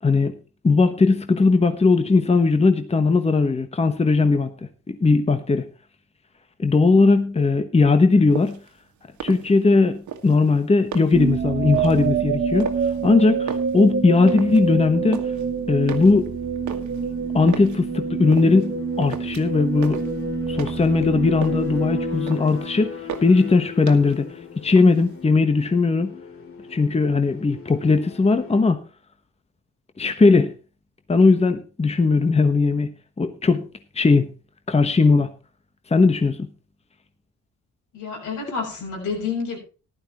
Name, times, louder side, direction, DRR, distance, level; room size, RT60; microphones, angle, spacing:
voice 1, 0.0-0.3 0.6-4.5 4.9-5.6 6.6-8.6 9.2-12.7 13.0-15.2 15.7-16.3 17.3-20.0 20.5-24.3 24.6-26.1 26.7-28.8 30.0-30.5 31.1-32.9 33.2-33.6 33.9-34.3 34.7-35.3 35.9-36.4, left 3 dB, 20° left, 1.2 m, -18 dB
sound 1, 8.3-8.7 9.1-9.8 10.1-11.3 11.7-12.1 12.6-13.1 13.4-14.7 14.9-15.4 15.9-17.8 18.3-18.7 19.0-19.6 19.8-21.0 21.2-21.8 22.1-22.7 23.1-23.5 23.9-24.3 24.6-25.2, right 8 dB, 75° right, 1.8 m, -36 dB
sound 2, 11.1-23.2, right 6 dB, 40° right, 1.3 m, -27 dB
sound 3, 14.4-28.6, left 8 dB, 45° left, 2.7 m, -37 dB
voice 2, 37.9-39.6, left 5 dB, 85° left, 6.9 m, -29 dB
14.5 x 12.0 x 3.0 m
cardioid pair, 90°, 30 cm